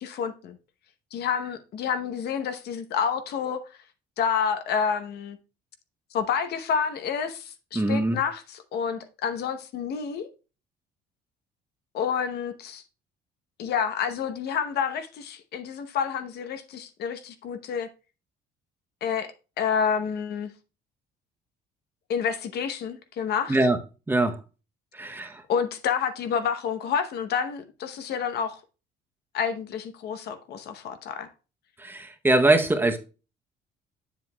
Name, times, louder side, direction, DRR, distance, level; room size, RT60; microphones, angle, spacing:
voice 1, 0.0-0.6 1.1-3.6 4.2-5.4 6.1-10.3 11.9-12.8 13.6-17.9 19.0-19.3 19.6-20.5 22.1-23.6 25.5-28.6 29.3-31.3, left 7 dB, 65° left, 0.9 m, -29 dB
voice 2, 7.7-8.2 23.5-23.8 24.1-24.4 25.0-25.4 31.8-33.0, right 2 dB, 10° right, 0.8 m, -22 dB
7.8 x 7.3 x 2.3 m
cardioid pair, 130°, 18 cm